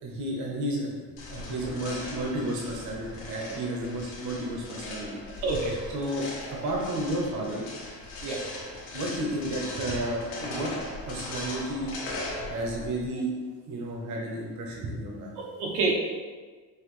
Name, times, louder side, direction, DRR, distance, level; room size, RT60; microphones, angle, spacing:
voice 1, 0.0-1.0 1.3-5.2 5.9-6.3 6.6-7.6 8.9-10.7 11.1-11.9 12.5-13.3 13.7-15.3, right 1 dB, 45° right, -2 dB, 0.9 m, -32 dB
sound 1, 1.2-13.1, left 2 dB, 60° left, 1.1 m, -39 dB
voice 2, 5.4-5.7 8.2-8.4 15.4-15.9, right 3 dB, 75° right, -2 dB, 1.0 m, -27 dB
5.7 x 3.0 x 3.1 m, 1.4 s
cardioid pair, 145°, 40 cm